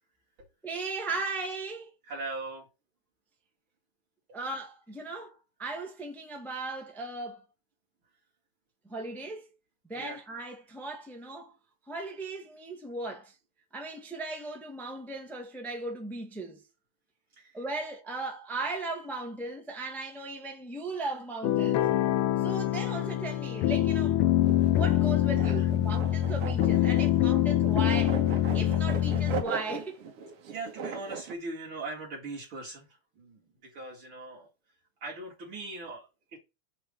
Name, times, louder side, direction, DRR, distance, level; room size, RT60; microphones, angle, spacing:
voice 1, 0.6-1.9 4.3-7.4 8.9-9.4 9.9-11.5 11.9-13.3 13.7-16.6 17.5-21.8 22.4-24.2 24.5-28.2 28.5-30.0, right 3 dB, ahead, 1.2 m, -37 dB
voice 2, 2.1-2.7 9.9-10.2 17.4-17.5 22.5-22.6 25.3-25.7 30.5-32.9 33.2-34.5 35.0-36.4, right 2 dB, 65° right, 3.0 m, -40 dB
sound 1, 21.4-29.4, left 12 dB, 85° left, 1.6 m, -25 dB
sound 2, 24.4-31.3, right 6 dB, 80° right, 2.2 m, -39 dB
9.4 x 3.4 x 6.4 m
omnidirectional pair, 2.4 m